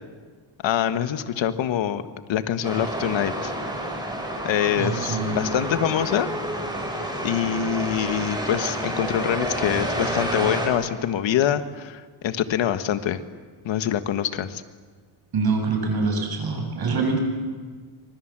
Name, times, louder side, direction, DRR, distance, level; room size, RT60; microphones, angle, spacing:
voice 1, 0.6-2.0 2.3-3.5 4.4-6.3 7.2-13.2 13.6-14.6, left 10 dB, 70° left, 10 dB, 1.7 m, -25 dB
sound 1, 2.6-10.7, right 1 dB, 10° right, 7.4 m, -29 dB
voice 2, 4.8-5.4 15.3-17.2, right 4 dB, 50° right, 3 dB, 8.0 m, -25 dB
26.5 x 25.5 x 7.6 m, 1.5 s
cardioid pair, 125°, 46 cm